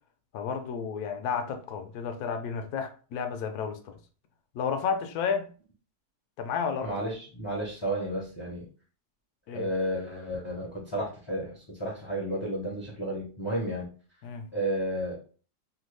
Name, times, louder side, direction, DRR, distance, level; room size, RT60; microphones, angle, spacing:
voice 1, 0.3-4.0 4.5-5.5 6.4-6.9 9.5-9.7 14.2-14.5, left 6 dB, 70° left, 1.0 m, -32 dB
voice 2, 6.8-8.6 9.5-13.9 14.5-15.2, right 1 dB, 30° left, 0.4 m, -32 dB
3.0 x 2.2 x 3.2 m
omnidirectional pair, 1.8 m